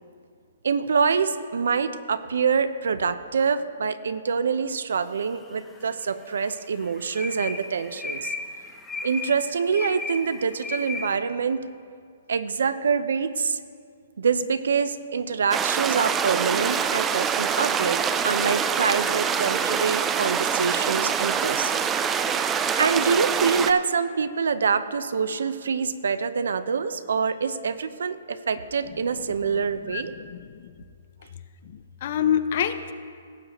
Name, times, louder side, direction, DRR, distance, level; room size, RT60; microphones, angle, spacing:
voice 1, 0.6-8.3 9.0-11.6 12.3-13.6 14.2-21.8 22.7-30.1, right 6 dB, 80° right, 13 dB, 0.6 m, -25 dB
sound 1, 5.2-5.9 6.3-11.2, left 3 dB, 10° left, 0.9 m, -35 dB
sound 2, 15.5-23.7, right 7 dB, 15° right, 0.4 m, -25 dB
voice 2, 29.9-30.7 31.7-32.9, left 9 dB, 55° left, 11 dB, 0.6 m, -27 dB
17.5 x 7.7 x 3.0 m, 2.2 s
hypercardioid pair, 140°, 0 cm